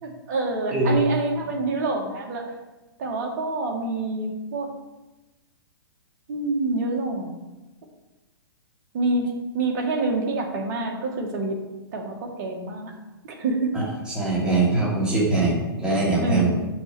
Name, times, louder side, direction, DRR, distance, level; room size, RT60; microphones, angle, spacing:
voice 1, 0.0-2.5 3.0-4.7 6.3-7.3 8.9-11.6 11.9-12.9 13.2-13.7 16.2-16.7, right 2 dB, 45° right, 0 dB, 1.9 m, -27 dB
voice 2, 14.1-16.5, right 2 dB, 5° right, -7 dB, 2.7 m, -22 dB
6.1 x 5.8 x 7.0 m, 1.1 s
hypercardioid pair, 135°, 13 cm